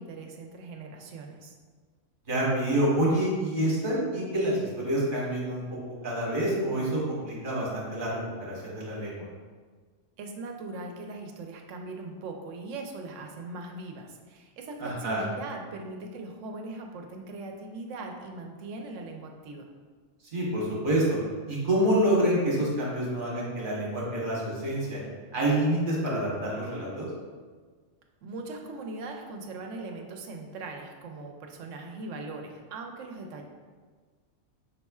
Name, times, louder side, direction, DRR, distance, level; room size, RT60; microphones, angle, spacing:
voice 1, 0.0-1.5 10.2-19.6 28.2-33.4, right 3 dB, 90° right, 2 dB, 1.0 m, -40 dB
voice 2, 2.3-5.6 6.0-9.2 14.8-15.2 20.3-21.2 21.5-25.0 25.3-27.1, right 1 dB, 45° right, -5 dB, 1.2 m, -27 dB
5.6 x 4.1 x 2.3 m, 1.5 s
omnidirectional pair, 1.3 m